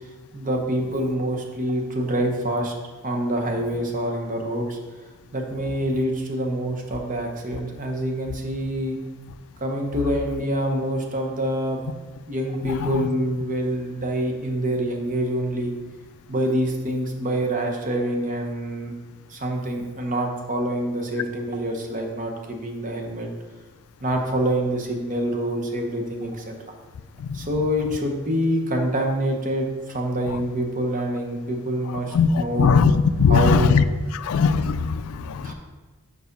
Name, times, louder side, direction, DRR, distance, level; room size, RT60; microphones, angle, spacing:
voice 1, 0.0-2.7 3.0-4.8 5.3-9.0 9.6-11.8 12.3-15.7 16.3-18.9 19.3-23.3 24.0-26.6 27.3-32.8 33.3-33.8 35.2-35.5, right 1 dB, 35° right, 2 dB, 0.9 m, -26 dB
voice 2, 12.6-13.1 27.2-27.4 32.1-33.8 34.1-35.5, left 5 dB, 70° left, 13 dB, 0.3 m, -20 dB
4.9 x 4.7 x 5.3 m, 1.3 s
head